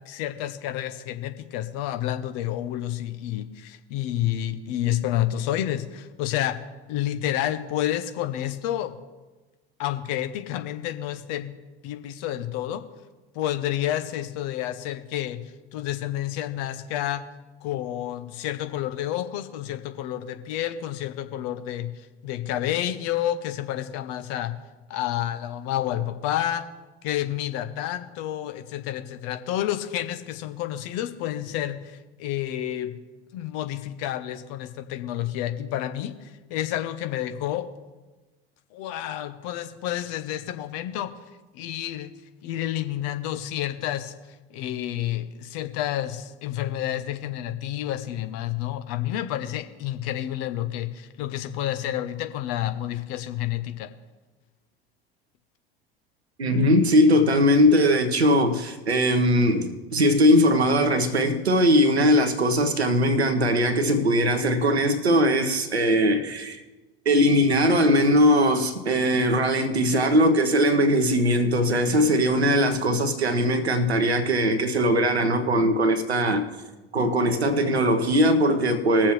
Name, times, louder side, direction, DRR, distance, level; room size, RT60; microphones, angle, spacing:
voice 1, 0.1-6.6 6.9-9.0 9.8-11.5 11.8-12.8 13.3-15.4 15.7-17.2 17.6-21.9 22.2-24.5 24.9-26.7 27.0-33.0 33.3-37.7 38.7-41.1 41.5-42.1 42.4-44.1 44.5-53.9, left 12 dB, 50° left, 0.9 m, -29 dB
voice 2, 56.4-66.6 67.0-76.5 76.9-79.1, equal, 85° right, 1.1 m, -20 dB
20.5 x 7.3 x 3.2 m
figure-of-eight pair, 75°, 31 cm